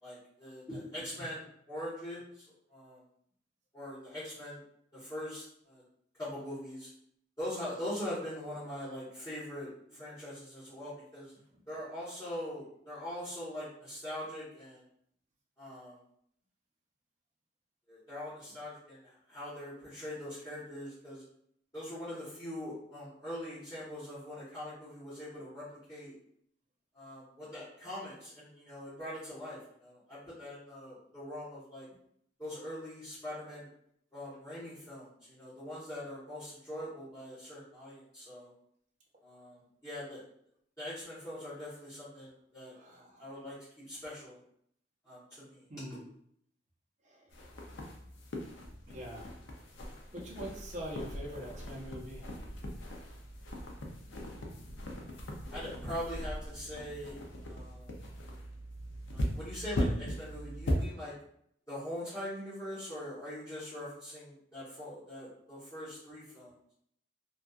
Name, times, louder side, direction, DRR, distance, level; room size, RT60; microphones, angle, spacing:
voice 1, 0.0-2.4 2.7-3.0 3.7-4.6 4.9-5.8 6.2-6.9 7.4-11.3 11.7-14.8 15.6-16.0 17.9-21.2 21.7-26.1 26.9-31.9 32.4-33.7 34.1-38.5 39.2-40.2 40.8-43.5 43.9-44.4 45.0-46.0 55.5-57.9 59.1-61.1 61.7-66.5, left 1 dB, 20° left, -13 dB, 1.0 m, -42 dB
voice 2, 42.7-43.3 45.7-46.0 47.0-47.4 48.9-49.4 50.1-52.4, equal, 40° right, -3 dB, 0.6 m, -44 dB
sound 1, 47.3-60.9, equal, 70° left, 0.5 m, -39 dB
2.7 x 2.3 x 2.3 m, 0.69 s
head